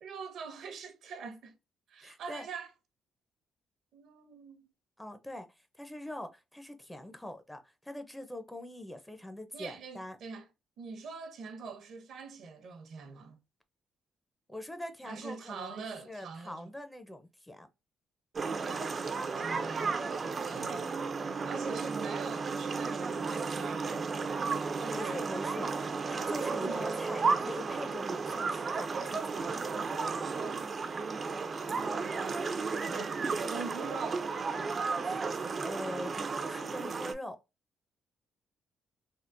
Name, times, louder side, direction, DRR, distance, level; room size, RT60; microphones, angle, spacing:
voice 1, 0.0-1.6 1.9-2.7 3.9-4.7 9.5-10.5 10.8-13.4 15.0-16.7 19.4-20.0 20.5-21.1 21.4-25.2 26.3-26.9 32.9-34.3, right 5 dB, 70° right, 0.8 m, -44 dB
voice 2, 2.0-2.5 5.0-5.5 5.8-10.2 14.5-17.7 24.6-29.5 35.0-35.1 35.6-37.4, left 1 dB, 10° left, 0.6 m, -43 dB
sound 1, 18.4-37.1, right 4 dB, 40° right, 0.4 m, -33 dB
3.6 x 2.0 x 2.4 m
cardioid pair, 90°, 0 cm